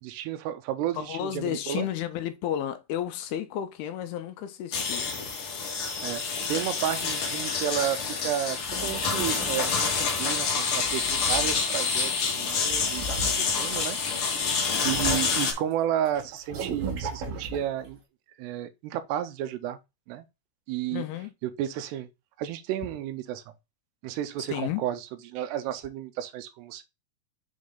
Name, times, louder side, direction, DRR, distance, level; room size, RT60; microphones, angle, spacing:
voice 1, 0.0-1.9 6.0-6.2 6.5-14.0 14.6-18.0 18.4-19.8 20.1-20.3 20.7-21.1 21.4-22.1 22.4-23.5 24.0-26.8, right 11 dB, 85° right, 2.8 m, -32 dB
voice 2, 0.9-5.1 20.9-21.3 24.5-24.8, left 11 dB, 80° left, 2.4 m, -32 dB
sound 1, 4.7-15.5, left 5 dB, 65° left, 1.3 m, -27 dB
sound 2, 8.4-10.3 10.7-11.9 12.7-13.8 14.4-15.6 15.8-17.9, right 3 dB, 65° right, 3.4 m, -37 dB
7.4 x 3.6 x 3.9 m
omnidirectional pair, 4.8 m